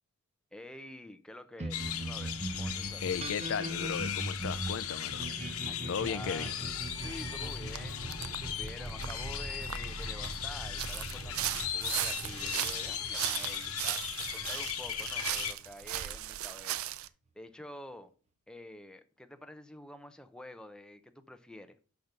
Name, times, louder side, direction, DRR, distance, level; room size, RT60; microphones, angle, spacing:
voice 1, 0.5-3.1 5.6-6.5 7.0-18.1 18.5-21.8, left 1 dB, 5° left, 0.6 m, -49 dB
sound 1, 1.6-16.3, right 1 dB, 30° right, 0.7 m, -42 dB
sound 2, 1.7-15.5, left 8 dB, 75° left, 1.0 m, -37 dB
voice 2, 3.0-5.3 5.9-6.5, left 6 dB, 60° left, 0.4 m, -35 dB
sound 3, 7.8-7.9 8.1-8.4 8.7-10.4 10.8-17.1, right 13 dB, 70° right, 0.4 m, -37 dB
6.0 x 5.2 x 6.6 m
head